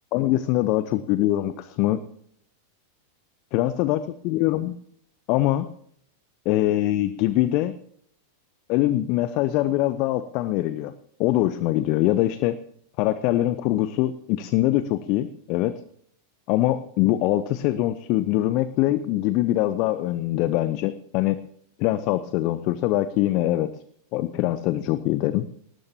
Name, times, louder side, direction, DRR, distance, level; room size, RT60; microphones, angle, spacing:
voice 1, 0.1-2.0 3.5-4.0 4.2-4.7 5.3-5.7 6.4-7.7 8.7-10.9 11.2-12.6 13.0-15.7 16.5-21.4 21.8-23.7 24.1-25.5, left 15 dB, 40° left, 14 dB, 0.8 m, -23 dB
21.0 x 18.5 x 2.9 m, 0.66 s
figure-of-eight pair, 90°, 0 cm